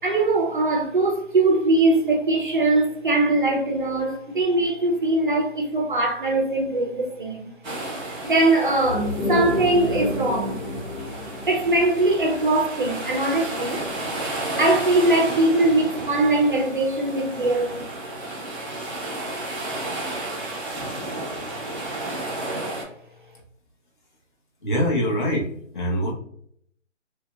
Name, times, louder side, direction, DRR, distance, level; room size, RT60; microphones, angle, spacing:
voice 1, 0.0-7.5 8.0-10.6 11.5-13.9 14.6-17.9, right 2 dB, 45° right, 0.5 m, -21 dB
sound 1, 7.6-22.8, right 2 dB, ahead, 0.8 m, -33 dB
sound 2, 8.7-13.5, left 2 dB, 75° left, 0.8 m, -30 dB
voice 2, 24.6-26.1, equal, 40° left, 0.9 m, -24 dB
3.0 x 2.7 x 2.2 m
hypercardioid pair, 165°, 37 cm